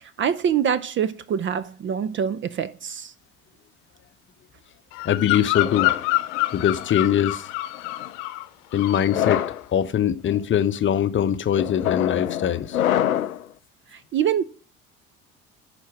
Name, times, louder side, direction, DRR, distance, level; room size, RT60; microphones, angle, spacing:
voice 1, 0.0-3.1 13.9-14.4, right 8 dB, 30° right, 0.6 m, -25 dB
Bird vocalization bird call bird song, 4.9-8.5 8.7-9.1, left 19 dB, 55° left, 0.9 m, -26 dB
voice 2, 5.0-6.0 6.5-7.5 8.7-9.4 9.7-12.8, left 9 dB, 30° left, 0.8 m, -22 dB
sound 1, 5.5-7.0 7.7-8.1 8.9-9.6 10.3-10.6 11.6-13.4, left 11 dB, 85° left, 0.5 m, -26 dB
11.0 x 4.4 x 6.3 m
figure-of-eight pair, 65°, 41 cm